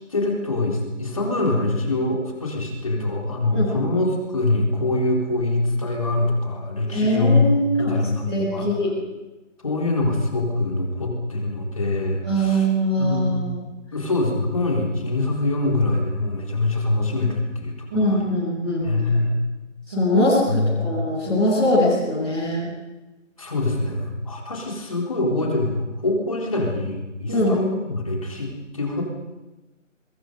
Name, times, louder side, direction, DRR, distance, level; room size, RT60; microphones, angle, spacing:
voice 1, 0.1-8.7 9.6-12.7 13.0-13.5 13.9-18.2 18.8-19.4 20.5-20.9 23.4-29.0, left 2 dB, 25° left, 0 dB, 4.0 m, -24 dB
voice 2, 6.9-7.9 8.3-8.9 12.2-13.5 17.9-18.8 19.9-22.7 27.3-27.5, equal, 5° right, -17 dB, 1.5 m, -21 dB
29.0 x 23.0 x 5.4 m, 1.1 s
figure-of-eight pair, 175°, 39 cm